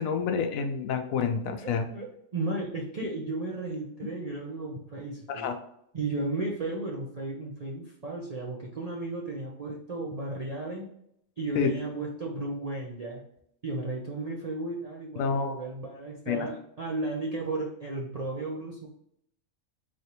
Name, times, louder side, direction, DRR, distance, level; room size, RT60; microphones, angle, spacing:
voice 1, 0.0-1.8 5.3-5.5 11.6-11.7 15.2-15.5 16.3-16.5, left 6 dB, 75° left, 6 dB, 1.0 m, -28 dB
voice 2, 1.6-5.5 5.9-10.9 11.4-13.2 13.6-18.9, right 2 dB, 40° right, -2 dB, 0.5 m, -34 dB
4.2 x 3.2 x 2.8 m, 0.74 s
omnidirectional pair, 1.5 m